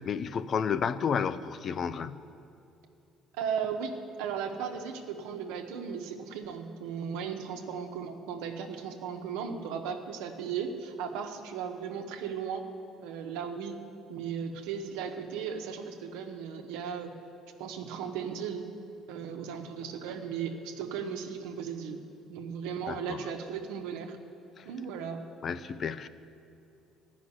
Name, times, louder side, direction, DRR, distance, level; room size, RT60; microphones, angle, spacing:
voice 1, 0.0-2.2 22.9-23.3 24.6-24.7 25.4-26.1, left 6 dB, 50° left, 13 dB, 0.5 m, -31 dB
voice 2, 3.3-12.6 13.0-13.8 14.1-17.2 17.6-18.7 19.1-22.0 22.3-24.2 24.6-25.2, right 7 dB, 90° right, 4 dB, 1.1 m, -36 dB
14.0 x 6.1 x 9.6 m, 2.7 s
supercardioid pair, 90°, 0 cm